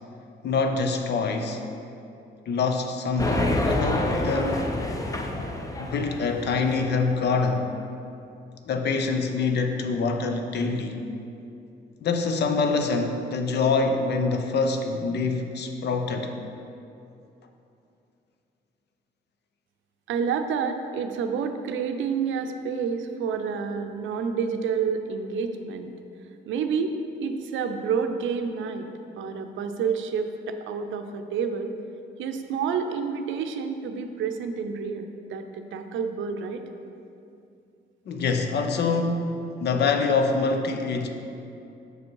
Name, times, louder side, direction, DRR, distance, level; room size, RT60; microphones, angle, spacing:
voice 1, 0.4-1.6 2.5-4.7 5.9-7.8 8.7-11.0 12.0-16.3 38.1-41.1, left 4 dB, 55° left, 5 dB, 0.7 m, -25 dB
sound 1, 3.2-7.0, left 1 dB, 15° left, 0.6 m, -27 dB
voice 2, 20.1-25.9 26.5-28.9 29.2-31.7 32.2-36.6, right 6 dB, 75° right, 7 dB, 0.5 m, -29 dB
6.2 x 5.2 x 4.6 m, 2.7 s
cardioid pair, 90°, 20 cm